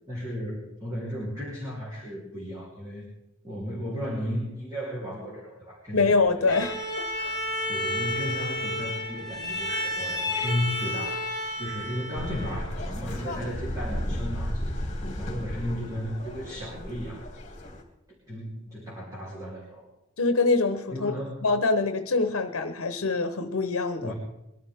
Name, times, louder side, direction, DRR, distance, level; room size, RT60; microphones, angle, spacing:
voice 1, 0.1-3.0 3.4-6.1 7.7-11.2 11.6-14.8 15.2-17.3 18.1-19.9 20.9-21.5 24.0-24.1, equal, 15° right, -7 dB, 3.4 m, -34 dB
voice 2, 5.9-7.4 20.2-21.1 21.4-24.1, left 3 dB, 80° left, 9 dB, 0.9 m, -25 dB
Bowed string instrument, 6.5-12.8, left 1 dB, 20° left, 3.9 m, -31 dB
sound 1, 12.1-17.8, equal, 35° left, 2.6 m, -34 dB
22.0 x 12.0 x 3.5 m, 0.89 s
head